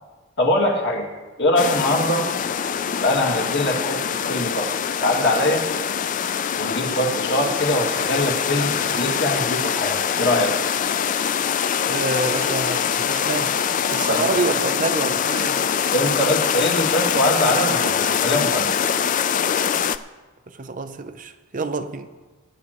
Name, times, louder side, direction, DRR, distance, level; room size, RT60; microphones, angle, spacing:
voice 1, 0.4-1.1 1.4-2.2 3.0-4.7 5.0-5.7 6.5-10.5 14.1-14.2 15.9-18.8, left 1 dB, 50° left, 2.3 m, -22 dB
sound 1, 1.6-20.0, left 8 dB, 35° left, 0.3 m, -23 dB
voice 2, 11.9-13.6 13.9-15.7 20.5-22.1, right 3 dB, 35° right, 0.5 m, -27 dB
22.0 x 10.0 x 3.0 m
head